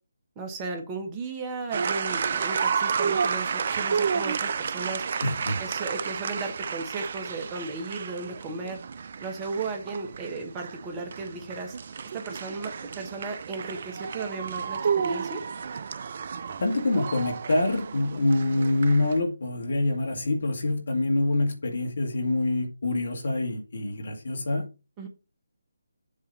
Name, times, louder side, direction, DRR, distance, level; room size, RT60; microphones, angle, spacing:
voice 1, 0.4-5.0 5.6-8.8 9.2-11.8 12.1-15.4 25.0-25.1, right 3 dB, 20° right, 1.1 m, -35 dB
sound 1, 1.7-19.2, right 6 dB, 45° right, 0.4 m, -31 dB
voice 2, 5.2-5.6 16.6-24.7, left 2 dB, 60° left, 1.7 m, -26 dB
7.5 x 2.8 x 5.4 m
figure-of-eight pair, 150°, 0 cm